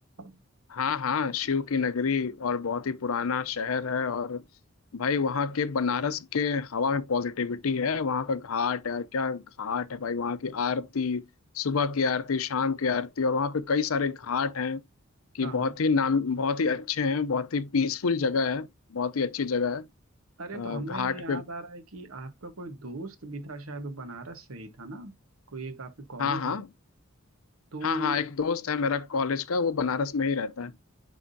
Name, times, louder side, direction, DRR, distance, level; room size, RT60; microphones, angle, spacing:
voice 1, 0.7-4.4 4.9-11.2 11.5-14.8 15.3-19.9 20.5-21.4 26.2-26.7 27.8-30.7, left 5 dB, 85° left, 0.6 m, -28 dB
voice 2, 15.4-15.7 20.4-25.1 25.5-26.6 27.7-28.2, right 2 dB, 90° right, 1.3 m, -38 dB
10.0 x 3.6 x 2.7 m
head